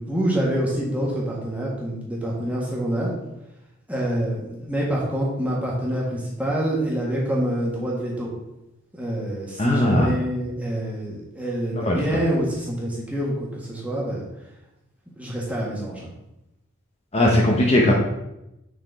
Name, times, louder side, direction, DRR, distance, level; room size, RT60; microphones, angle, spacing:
voice 1, 0.0-3.1 3.9-8.3 9.0-14.2 15.2-16.1, right 1 dB, 5° right, -4 dB, 1.5 m, -26 dB
voice 2, 9.6-10.1 11.8-12.0 17.1-17.9, left 1 dB, 30° left, -1 dB, 0.7 m, -18 dB
6.3 x 4.3 x 4.0 m, 0.89 s
head